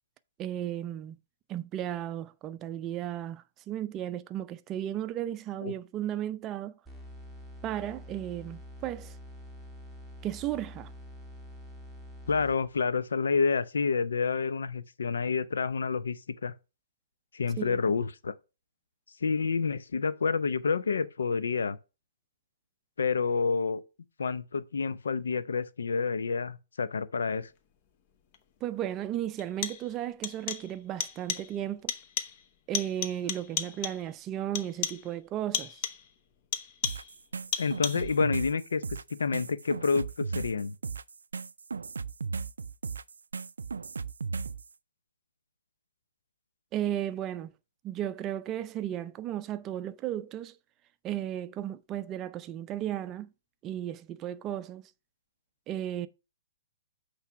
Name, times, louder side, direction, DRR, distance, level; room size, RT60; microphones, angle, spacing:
voice 1, 0.4-1.2 1.5-6.8 7.6-9.2 10.2-10.9 17.6-17.8 28.6-31.9 32.7-35.8 46.7-47.5 47.8-50.6 51.0-53.3 53.6-54.8 55.7-56.1, right 11 dB, 25° right, 0.5 m, -34 dB
sound 1, 6.8-12.9, equal, 5° left, 1.5 m, -47 dB
voice 2, 12.3-16.5 17.3-18.3 19.2-21.8 23.0-23.8 24.2-27.5 37.6-40.8, left 5 dB, 80° left, 0.6 m, -29 dB
sound 2, 28.3-28.4 29.4-30.0 30.2-30.8 31.0-31.6 31.9-32.5 32.7-34.1 34.6-35.1 35.5-36.1 36.5-37.2 37.5-38.2, left 8 dB, 40° left, 0.9 m, -35 dB
sound 3, 36.8-44.7, right 5 dB, 85° right, 0.3 m, -36 dB
8.2 x 3.4 x 5.7 m
hypercardioid pair, 135°, 0 cm